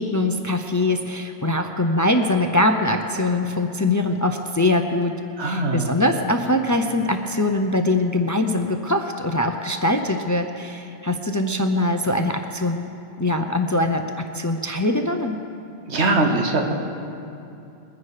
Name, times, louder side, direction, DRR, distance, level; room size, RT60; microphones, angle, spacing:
voice 1, 0.0-12.9 13.2-15.3, left 1 dB, 25° left, 5 dB, 0.4 m, -22 dB
voice 2, 5.4-5.9 15.9-16.7, right 2 dB, 90° right, 2 dB, 1.5 m, -21 dB
21.0 x 10.0 x 4.9 m, 2.7 s
omnidirectional pair, 1.1 m